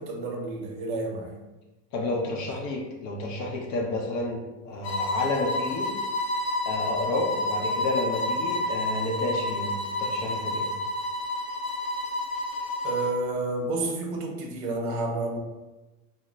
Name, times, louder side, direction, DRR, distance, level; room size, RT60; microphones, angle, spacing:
voice 1, 0.0-1.4 12.8-15.4, right 2 dB, 45° right, 1 dB, 0.7 m, -30 dB
voice 2, 1.9-5.9 6.6-10.7, left 2 dB, 40° left, -1 dB, 0.5 m, -30 dB
sound 1, 4.8-13.2, left 1 dB, 85° left, 0.6 m, -29 dB
2.1 x 2.1 x 3.7 m, 1.1 s
hypercardioid pair, 85°, 50 cm